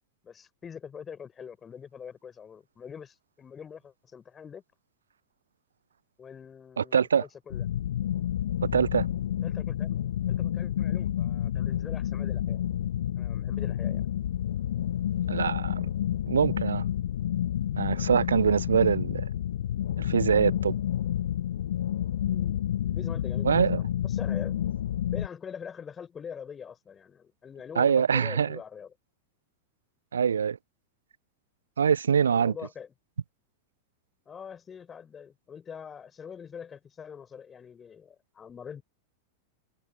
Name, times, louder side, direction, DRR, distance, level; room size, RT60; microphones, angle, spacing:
voice 1, 0.2-4.6 6.2-7.6 9.4-10.0 10.3-12.6 13.2-14.0 22.2-22.6 22.8-24.6 25.1-28.9 32.3-32.9 34.3-38.8, left 7 dB, 20° left, 6.3 m, -44 dB
voice 2, 6.8-7.2 8.7-9.1 15.3-15.9 16.3-16.8 17.8-19.3 20.0-20.7 23.4-23.8 27.8-28.5 30.1-30.6 31.8-32.5, right 7 dB, 70° right, 0.4 m, -24 dB
sound 1, 7.5-25.3, left 11 dB, 60° left, 1.4 m, -29 dB
figure-of-eight pair, 90°, 0 cm